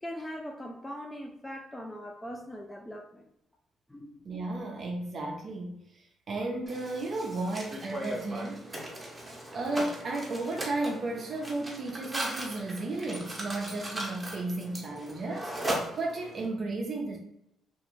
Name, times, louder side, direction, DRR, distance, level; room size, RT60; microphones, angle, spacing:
voice 1, 0.0-3.2 3.9-4.2, equal, 10° left, 1 dB, 0.3 m, -41 dB
voice 2, 4.2-8.8 9.5-15.5 15.9-17.2, right 2 dB, 50° right, 0 dB, 0.4 m, -34 dB
Mechanisms, 6.7-16.4, right 1 dB, 15° right, 0.7 m, -38 dB
2.4 x 2.4 x 3.0 m, 0.77 s
cardioid pair, 90°, 0 cm